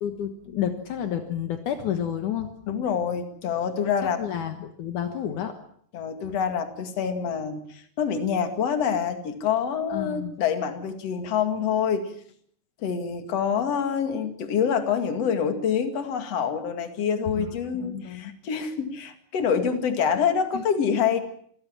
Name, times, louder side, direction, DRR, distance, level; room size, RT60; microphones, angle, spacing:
voice 1, 0.0-2.5 4.0-5.5 9.9-10.4 17.4-17.5 17.8-18.3 20.5-20.6, left 9 dB, 75° left, 7 dB, 1.8 m, -30 dB
voice 2, 2.7-4.2 5.9-12.1 12.8-21.2, left 7 dB, 45° left, 8 dB, 2.2 m, -26 dB
26.0 x 18.0 x 7.4 m, 0.64 s
omnidirectional pair, 5.8 m